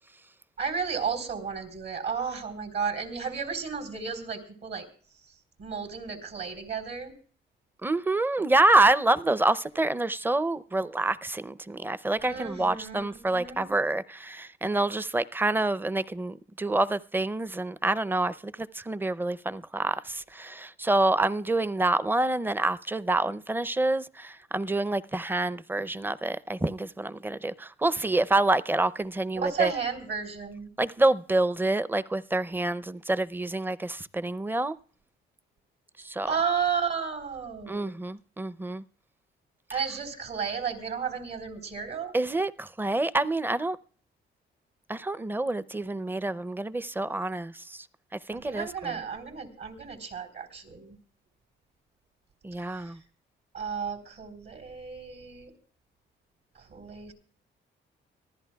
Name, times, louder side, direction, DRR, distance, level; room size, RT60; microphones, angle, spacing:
voice 1, 0.6-4.9 5.6-7.1 12.2-13.7 29.4-30.7 36.3-37.9 39.7-42.2 48.3-51.0 52.8-52.9 53.5-55.5 56.7-57.1, right 6 dB, 65° right, 3.9 m, -33 dB
voice 2, 7.8-29.7 30.8-34.8 36.0-36.3 37.7-38.8 39.7-39.8 42.1-43.8 44.9-47.9 48.1-49.0 52.4-53.0, right 2 dB, 10° right, 0.5 m, -27 dB
25.0 x 15.0 x 2.3 m
cardioid pair, 90°, 20 cm